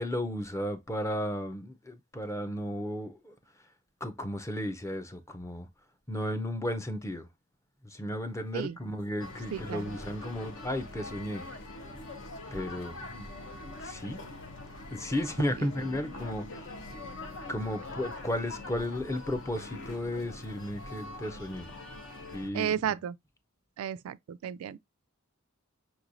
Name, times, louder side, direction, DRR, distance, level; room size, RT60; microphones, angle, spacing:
voice 1, 0.0-3.3 4.0-5.7 6.1-7.3 7.8-11.5 12.5-13.3 13.8-14.2 14.9-16.7 17.5-21.7 22.3-22.9, left 1 dB, 15° left, 0.5 m, -34 dB
sound 1, 7.9-17.6, left 3 dB, 85° left, 1.6 m, -56 dB
sound 2, 9.2-22.5, left 2 dB, 60° left, 0.8 m, -43 dB
voice 2, 9.5-9.9 15.6-15.7 22.5-23.2 23.8-24.8, right 9 dB, 80° right, 0.3 m, -33 dB
5.3 x 3.0 x 2.5 m
head